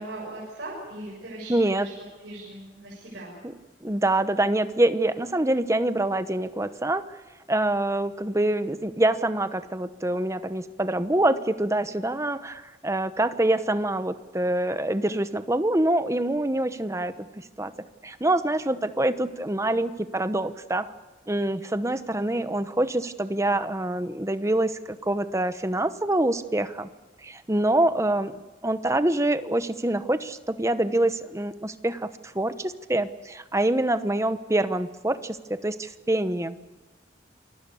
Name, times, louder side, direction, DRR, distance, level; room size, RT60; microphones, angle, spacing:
voice 1, 0.0-1.9 2.2-3.4, right 1 dB, 55° right, -3 dB, 7.5 m, -39 dB
voice 2, 1.5-1.9 3.8-7.0 7.5-17.7 18.0-20.9 21.3-26.9 27.2-28.4 28.6-32.1 32.3-36.6, right 1 dB, 15° right, 11 dB, 1.0 m, -25 dB
28.0 x 22.5 x 7.1 m, 1.2 s
head